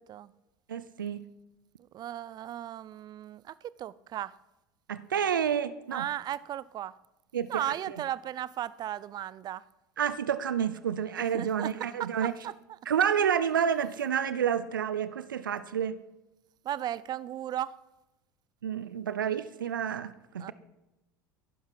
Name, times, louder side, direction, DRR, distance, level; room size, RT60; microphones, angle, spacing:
voice 1, 0.7-1.3 4.9-6.1 7.3-8.0 10.0-12.3 12.9-16.0 18.6-20.5, right 8 dB, 85° right, 15 dB, 0.6 m, -29 dB
voice 2, 1.9-4.3 5.9-6.9 7.5-9.6 11.3-11.7 12.0-12.5 16.6-17.8 20.4-20.5, right 12 dB, 40° right, 20 dB, 0.5 m, -36 dB
15.5 x 11.5 x 4.7 m, 0.96 s
hypercardioid pair, 75°, 11 cm